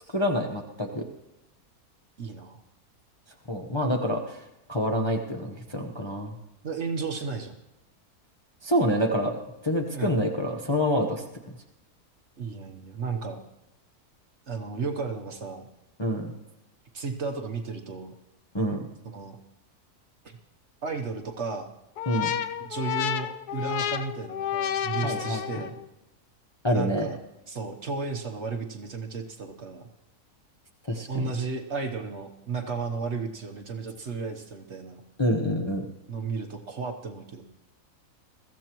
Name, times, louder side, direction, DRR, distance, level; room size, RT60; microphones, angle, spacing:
voice 1, 0.1-1.0 3.5-4.4 4.7-6.3 8.6-9.4 9.6-11.2 16.0-16.3 18.5-18.8 22.1-22.3 25.0-25.7 26.6-27.1 30.8-31.3 35.2-35.9, equal, 20° left, 2 dB, 0.8 m, -27 dB
voice 2, 2.2-2.6 6.6-7.5 9.9-10.2 12.4-13.4 14.5-15.6 16.9-18.1 19.0-19.4 20.2-20.4 20.8-21.7 22.6-25.8 26.7-27.2 27.5-29.9 31.1-35.0 36.1-37.4, right 4 dB, 50° right, 4 dB, 1.2 m, -33 dB
sound 1, 22.0-25.9, left 10 dB, 80° left, 1.2 m, -31 dB
21.5 x 14.5 x 3.0 m, 0.95 s
omnidirectional pair, 1.7 m